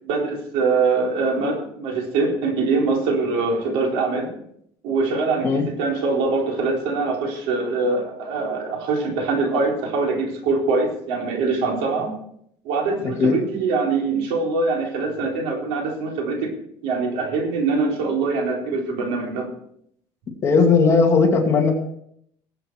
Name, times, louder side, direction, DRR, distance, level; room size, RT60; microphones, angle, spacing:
voice 1, 0.0-4.3 4.8-12.1 12.6-16.5 16.8-19.5, right 3 dB, 90° right, 0 dB, 4.2 m, -23 dB
voice 2, 20.4-21.7, left 4 dB, 30° left, 1 dB, 2.6 m, -17 dB
20.0 x 8.2 x 4.7 m, 0.70 s
cardioid pair, 170°, 9 cm